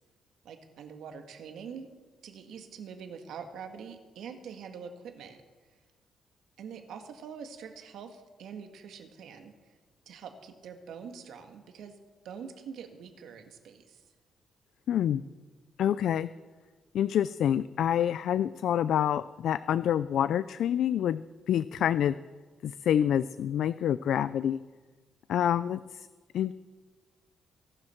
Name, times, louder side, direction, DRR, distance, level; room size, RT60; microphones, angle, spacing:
voice 1, 0.4-1.9 2.2-5.4 6.6-9.5 10.1-11.9 12.2-14.0, right 6 dB, 75° right, 6 dB, 1.8 m, -44 dB
voice 2, 14.9-15.2 15.8-16.3 16.9-22.2 22.6-24.6 25.3-26.1 26.3-26.5, left 10 dB, 70° left, 15 dB, 0.4 m, -27 dB
22.0 x 12.0 x 4.5 m, 1.3 s
cardioid pair, 140°, 0 cm